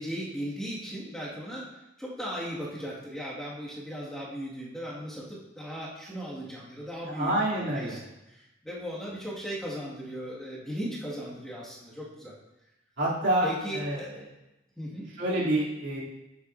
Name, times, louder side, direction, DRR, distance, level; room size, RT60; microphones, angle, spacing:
voice 1, 0.0-1.7 2.0-8.0 8.3-12.3 13.4-14.1 14.8-15.1, equal, 5° left, -8 dB, 2.0 m, -37 dB
voice 2, 7.1-8.0 13.0-14.1 15.2-16.0, right 1 dB, 65° right, -7 dB, 3.1 m, -27 dB
10.5 x 7.9 x 2.7 m, 0.94 s
head